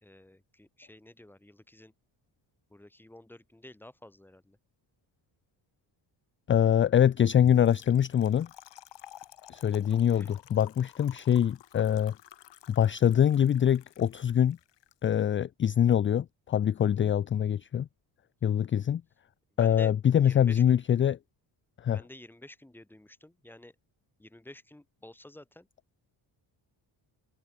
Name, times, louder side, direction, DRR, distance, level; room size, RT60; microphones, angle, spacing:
voice 1, 0.0-1.9 2.7-4.6 9.9-10.3 19.5-19.9 20.2-20.6 21.9-23.7 24.2-25.7, left 1 dB, 5° left, 1.3 m, -50 dB
voice 2, 6.5-8.5 9.5-12.1 12.7-14.6 15.0-17.9 18.4-19.0 19.6-21.2 21.8-22.0, left 9 dB, 30° left, 0.3 m, -24 dB
Trickle dribble / Fill (with liquid), 7.5-14.9, left 12 dB, 60° left, 2.1 m, -53 dB
open air
cardioid pair, 135°, 47 cm